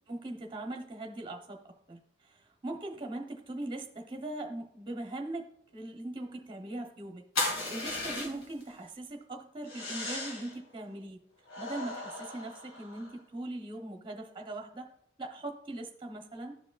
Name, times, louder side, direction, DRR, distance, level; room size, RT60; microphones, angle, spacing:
voice 1, 0.1-1.6 1.9-11.2 11.6-14.9 15.2-16.6, right 2 dB, 25° right, 2 dB, 0.8 m, -40 dB
sound 1, 7.3-8.6 9.6-10.6 11.5-13.1, left 2 dB, 75° left, 2.2 m, -36 dB
13.5 x 4.8 x 2.4 m, 0.72 s
head